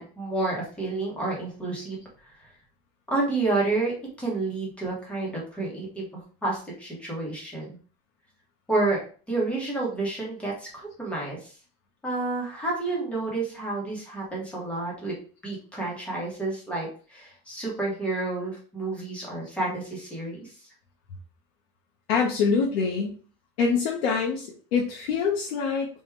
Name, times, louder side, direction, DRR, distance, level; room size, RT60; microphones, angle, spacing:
voice 1, 0.0-2.3 3.1-6.1 6.4-7.8 8.7-9.0 9.3-11.5 12.0-20.5, right 2 dB, 5° left, -4 dB, 0.8 m, -30 dB
voice 2, 22.1-23.2 23.6-25.9, left 5 dB, 80° left, -2 dB, 0.9 m, -25 dB
3.5 x 2.2 x 4.3 m, 0.40 s
supercardioid pair, 180°, 31 cm